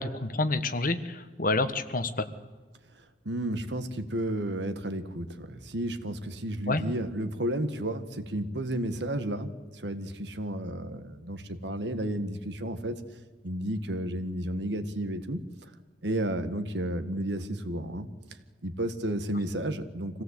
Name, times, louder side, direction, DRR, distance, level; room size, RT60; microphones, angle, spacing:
voice 1, 0.0-2.3 6.7-6.8, left 2 dB, 50° left, 10 dB, 1.4 m, -28 dB
voice 2, 3.2-13.0 13.4-15.4 16.0-18.1 18.6-20.2, right 1 dB, 75° right, 9 dB, 1.6 m, -32 dB
25.5 x 17.0 x 8.2 m, 1.4 s
head